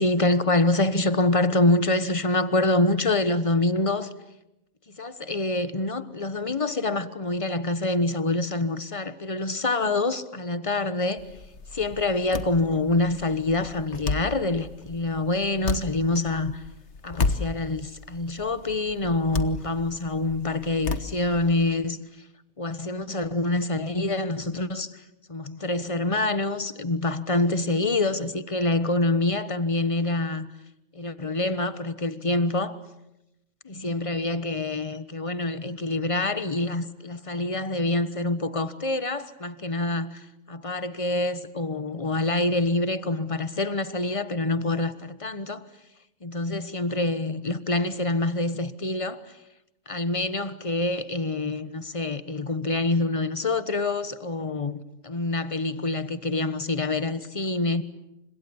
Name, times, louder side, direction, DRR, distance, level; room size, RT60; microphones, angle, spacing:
voice 1, 0.0-4.1 4.9-11.2 11.7-16.6 17.0-22.0 22.6-25.0 25.3-30.5 30.9-32.8 33.6-45.6 46.2-49.4 49.9-57.8, left 2 dB, 25° left, 1.2 m, -26 dB
sound 1, 11.2-21.7, left 4 dB, 55° left, 1.6 m, -33 dB
29.5 x 26.0 x 7.1 m
omnidirectional pair, 1.4 m